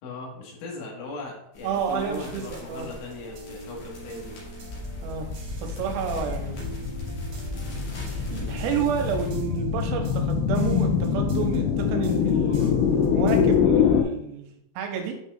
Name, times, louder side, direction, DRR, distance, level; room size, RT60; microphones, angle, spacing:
voice 1, 0.0-4.4 8.3-8.7, left 2 dB, 70° left, -2 dB, 3.9 m, -39 dB
sound 1, 1.5-9.3, left 1 dB, 50° left, 3.1 m, -44 dB
voice 2, 1.6-2.9 5.0-5.3 5.6-6.6 8.1-14.5 14.8-15.1, right 7 dB, 90° right, 3 dB, 3.4 m, -30 dB
sound 2, 2.8-13.6, right 4 dB, 70° right, 1.9 m, -43 dB
sound 3, 4.7-14.0, left 7 dB, 90° left, 2.5 m, -25 dB
9.4 x 5.5 x 2.4 m, 0.78 s
omnidirectional pair, 5.9 m